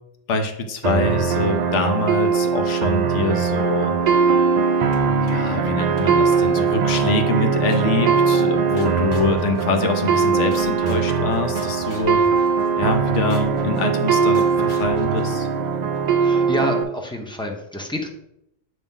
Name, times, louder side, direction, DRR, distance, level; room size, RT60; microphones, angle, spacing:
voice 1, 0.3-3.9 5.3-12.2 12.8-15.5, left 3 dB, 75° left, 5 dB, 1.1 m, -24 dB
sound 1, 0.8-16.8, right 5 dB, 55° right, 0.5 m, -20 dB
sound 2, 4.9-5.6 6.0-7.1 7.7-8.3 8.8-10.2 10.5-16.2, equal, 90° left, 1.5 m, -42 dB
voice 2, 16.2-18.1, equal, 5° left, 2 dB, 0.7 m, -28 dB
7.0 x 3.1 x 5.4 m, 0.81 s
omnidirectional pair, 1.2 m